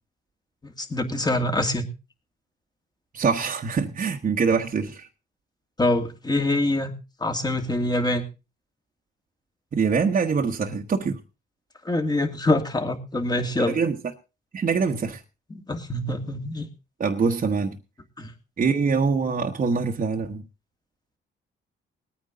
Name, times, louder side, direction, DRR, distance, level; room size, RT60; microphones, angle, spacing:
voice 1, 0.6-1.8 5.8-6.9 7.2-8.3 11.8-13.8 15.7-16.7 18.2-18.3, left 1 dB, 20° left, 2.3 m, -25 dB
voice 2, 3.1-5.1 9.7-11.2 13.7-14.0 14.5-15.2 17.0-17.8 18.6-20.4, right 5 dB, 40° right, 1.3 m, -24 dB
19.5 x 9.3 x 3.8 m
cardioid pair, 90°, 20 cm